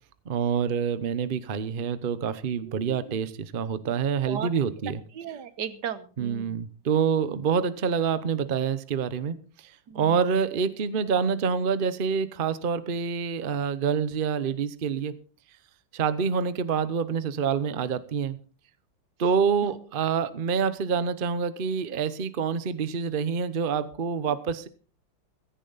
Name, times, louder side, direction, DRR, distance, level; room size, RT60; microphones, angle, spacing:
voice 1, 0.3-5.0 6.2-15.2 15.9-18.4 19.2-24.7, right 6 dB, 80° right, 0.4 m, -27 dB
voice 2, 2.7-3.2 4.3-4.5 5.2-6.6 9.9-10.1 19.6-19.8, right 8 dB, 60° right, 1.4 m, -36 dB
16.0 x 14.0 x 4.0 m
omnidirectional pair, 2.4 m